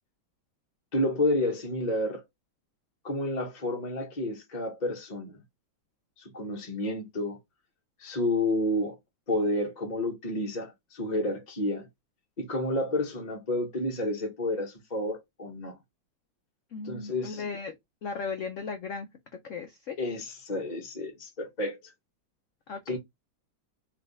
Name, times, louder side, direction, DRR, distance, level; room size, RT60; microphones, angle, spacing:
voice 1, 0.9-2.2 3.0-5.4 6.2-7.4 8.0-9.0 9.3-11.9 12.4-15.8 16.8-17.4 20.0-21.8 22.9-23.0, left 1 dB, 35° left, 0.7 m, -30 dB
voice 2, 16.7-17.8 18.0-19.1 19.4-20.0 22.7-23.0, left 5 dB, 80° left, 0.7 m, -36 dB
3.4 x 3.1 x 3.9 m
omnidirectional pair, 2.2 m